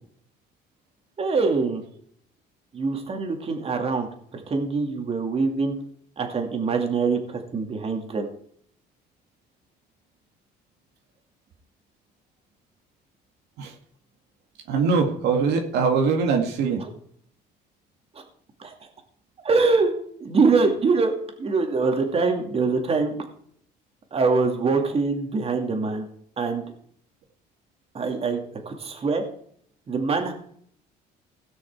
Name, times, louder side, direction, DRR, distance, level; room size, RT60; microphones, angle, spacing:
voice 1, 1.2-1.8 2.7-5.8 6.2-8.3 16.8-16.9 18.6-18.7 19.4-19.9 20.2-23.2 24.1-26.0 26.4-26.6 27.9-29.2 29.9-30.3, right 4 dB, 35° right, 4 dB, 2.4 m, -24 dB
voice 2, 14.7-16.8, right 5 dB, 80° right, 2 dB, 2.1 m, -22 dB
17.0 x 6.3 x 4.6 m, 0.64 s
cardioid pair, 110°, 17 cm